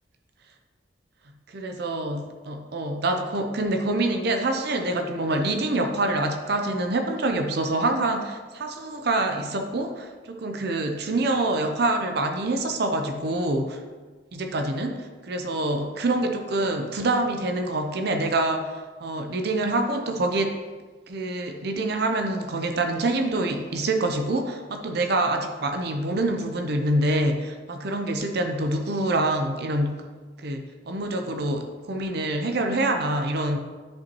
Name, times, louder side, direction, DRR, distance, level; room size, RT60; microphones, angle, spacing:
voice 1, 1.5-13.8 14.3-20.6 21.1-30.0 30.4-33.6, right 2 dB, 60° right, 5 dB, 0.6 m, -26 dB
10.0 x 5.4 x 3.0 m, 1.4 s
head